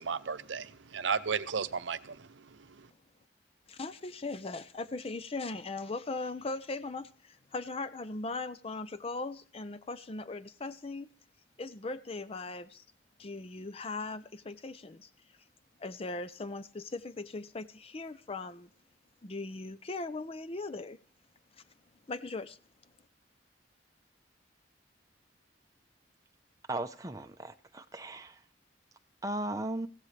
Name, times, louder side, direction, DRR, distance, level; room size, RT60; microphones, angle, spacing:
voice 1, 0.0-2.9, right 6 dB, 85° right, 0.7 m, -35 dB
voice 2, 3.7-11.1 11.6-12.8 13.2-15.1 15.8-18.7 19.2-21.0 22.1-22.6, left 3 dB, 30° left, 0.5 m, -39 dB
voice 3, 26.7-28.4 29.2-29.9, right 1 dB, 20° right, 0.7 m, -36 dB
15.5 x 15.0 x 3.3 m
head